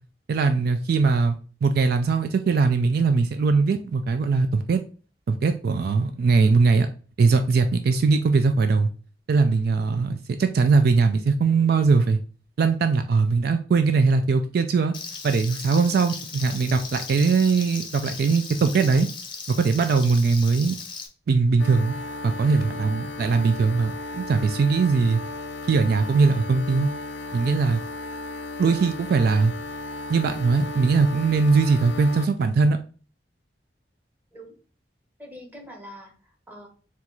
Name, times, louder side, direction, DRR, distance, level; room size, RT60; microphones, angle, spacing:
voice 1, 0.3-4.8 5.3-6.9 7.2-8.9 9.3-12.2 12.6-14.9 15.2-19.1 19.5-20.8 21.3-21.9 22.2-25.2 25.7-26.9 27.3-27.8 28.6-29.5 30.1-32.8, right 4 dB, 60° right, 8 dB, 0.3 m, -21 dB
Frying (food), 14.9-21.1, left 5 dB, 30° left, 0.6 m, -37 dB
sound 1, 21.6-32.3, left 2 dB, 90° left, 0.6 m, -35 dB
voice 2, 35.2-36.7, equal, 10° right, 0 dB, 1.0 m, -44 dB
4.4 x 2.4 x 3.9 m, 0.39 s
head